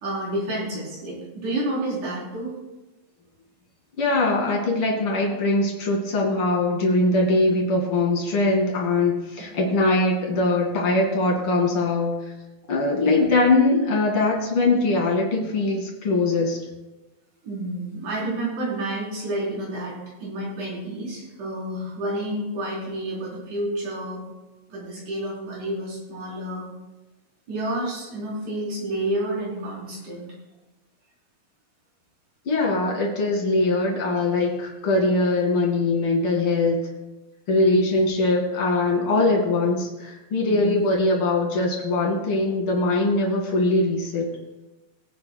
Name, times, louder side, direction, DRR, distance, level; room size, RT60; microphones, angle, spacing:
voice 1, 0.0-2.5 9.8-9.9 12.9-13.3 17.4-24.2 24.7-26.7 27.5-30.3 37.5-38.0 40.4-40.9, right 1 dB, 85° right, -6 dB, 5.6 m, -30 dB
voice 2, 4.0-12.1 12.7-16.6 32.5-36.9 37.5-44.3, left 2 dB, 45° left, -2 dB, 3.0 m, -22 dB
23.5 x 8.9 x 2.3 m, 1.1 s
omnidirectional pair, 3.4 m